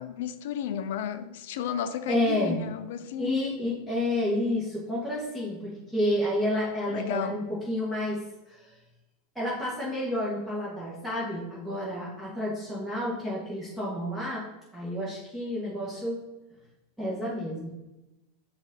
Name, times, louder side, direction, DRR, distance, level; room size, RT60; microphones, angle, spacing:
voice 1, 0.0-3.4 6.9-7.4, left 9 dB, 70° left, 11 dB, 0.4 m, -33 dB
voice 2, 2.1-2.6 3.2-8.2 8.5-8.7 9.3-14.4 14.7-16.2 17.0-17.7, left 1 dB, 5° right, -8 dB, 1.3 m, -30 dB
5.1 x 2.7 x 3.7 m, 1.0 s
hypercardioid pair, 100°, 0 cm